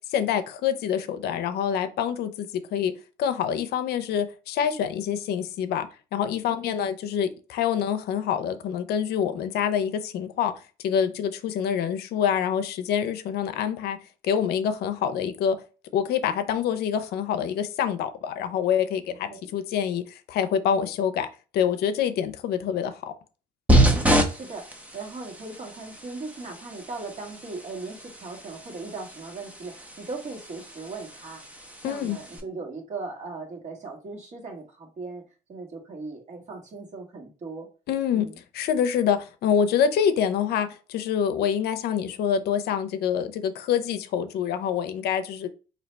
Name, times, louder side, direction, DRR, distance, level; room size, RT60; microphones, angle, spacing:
voice 1, 0.1-2.9 3.2-10.5 10.8-14.0 14.2-15.6 15.9-21.3 21.5-23.1 31.8-32.2 37.9-45.5, left 8 dB, 70° left, 0.5 m, -26 dB
sound 1, 23.7-32.4, right 1 dB, 10° right, 0.7 m, -27 dB
voice 2, 23.9-35.2 35.5-37.7 38.1-38.4, right 3 dB, 45° right, 1.5 m, -38 dB
4.1 x 2.7 x 3.3 m
cardioid pair, 110°, 17 cm